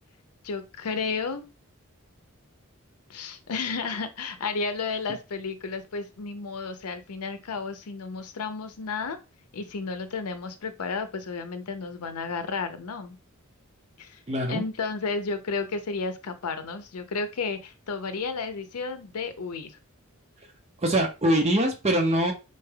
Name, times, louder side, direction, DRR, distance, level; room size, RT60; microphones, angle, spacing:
voice 1, 0.4-1.4 3.1-9.2 9.5-13.2 14.0-14.2 14.5-19.7, left 4 dB, 85° left, 9 dB, 0.6 m, -32 dB
voice 2, 14.3-14.6 20.8-22.3, right 1 dB, 30° right, 3 dB, 0.7 m, -23 dB
4.2 x 3.3 x 2.2 m, 0.28 s
head